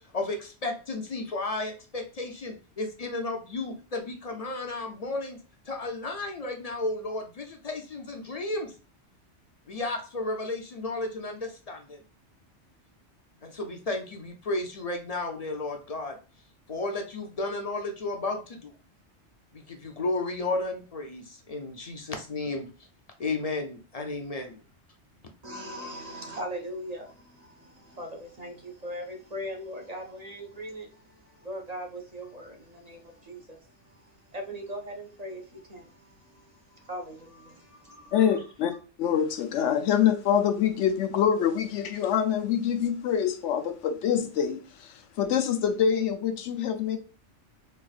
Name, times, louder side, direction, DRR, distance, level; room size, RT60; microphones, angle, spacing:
voice 1, 0.1-5.4 5.7-8.7 9.7-12.0 13.4-16.2 16.7-18.7 19.5-22.7 23.2-24.6, left 2 dB, 45° left, 0.5 m, -33 dB
voice 2, 25.4-38.4, equal, 40° right, 0.7 m, -40 dB
voice 3, 38.1-38.7 39.0-47.0, left 8 dB, 90° left, 1.0 m, -25 dB
4.4 x 2.4 x 2.3 m
omnidirectional pair, 1.2 m